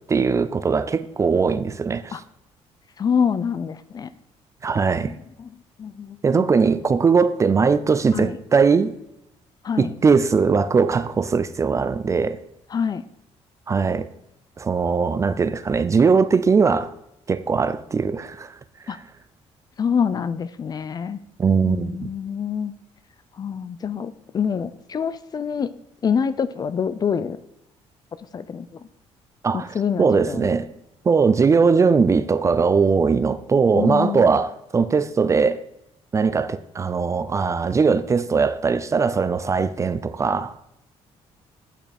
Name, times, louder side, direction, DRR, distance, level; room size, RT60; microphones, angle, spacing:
voice 1, 0.1-2.2 4.6-5.1 6.2-8.9 9.8-12.4 13.7-14.1 14.6-16.9 17.3-18.5 18.9-19.0 21.4-22.1 29.4-30.7 31.0-35.6 36.1-40.5, right 5 dB, 25° right, 0.4 m, -20 dB
voice 2, 3.0-4.1 5.4-5.5 5.8-6.5 8.1-8.4 9.6-9.9 12.7-13.0 18.9-19.0 19.8-21.2 21.6-22.7 23.4-25.7 26.0-27.4 28.3-28.7 29.5-30.5 33.7-34.4, left 7 dB, 35° left, 0.4 m, -26 dB
8.7 x 5.6 x 4.2 m
cardioid pair, 115°, 12 cm